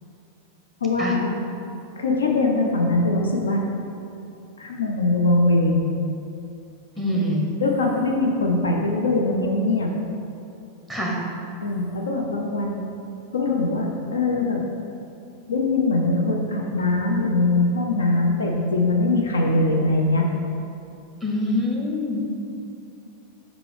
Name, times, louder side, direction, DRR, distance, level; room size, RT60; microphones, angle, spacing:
voice 1, 0.8-1.4 2.0-3.7 4.6-5.9 7.0-7.2 7.6-9.9 11.6-12.9 13.3-14.6 15.5-20.3, left 2 dB, 70° left, 1 dB, 0.5 m, -22 dB
voice 2, 7.0-7.5 10.9-11.2 21.2-22.2, left 1 dB, 5° left, -1 dB, 0.8 m, -25 dB
5.9 x 4.8 x 3.3 m, 2.7 s
figure-of-eight pair, 90°, 0 cm